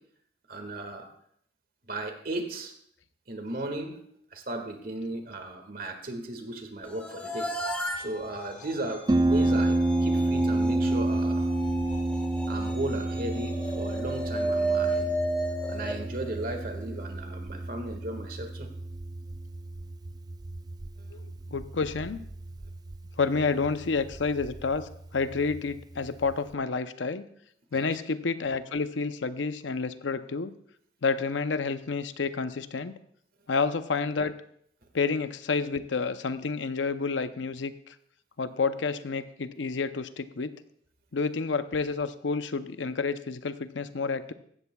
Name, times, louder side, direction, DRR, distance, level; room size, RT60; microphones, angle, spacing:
voice 1, 0.5-1.1 1.9-2.7 3.3-4.0 4.3-7.5 8.0-11.5 12.5-15.1 15.7-18.7 21.0-21.1 27.7-27.9, right 2 dB, 50° right, 5 dB, 1.8 m, -36 dB
sound 1, 6.8-17.0, right 1 dB, 5° left, 1.5 m, -34 dB
Harp, 9.1-26.5, right 2 dB, 20° right, 0.3 m, -30 dB
voice 2, 21.1-22.2 23.2-27.3 27.7-30.5 31.0-32.9 33.5-34.3 34.9-37.9 38.4-40.5 41.1-44.3, left 4 dB, 80° left, 11 dB, 0.6 m, -29 dB
16.0 x 13.0 x 2.3 m, 0.67 s
head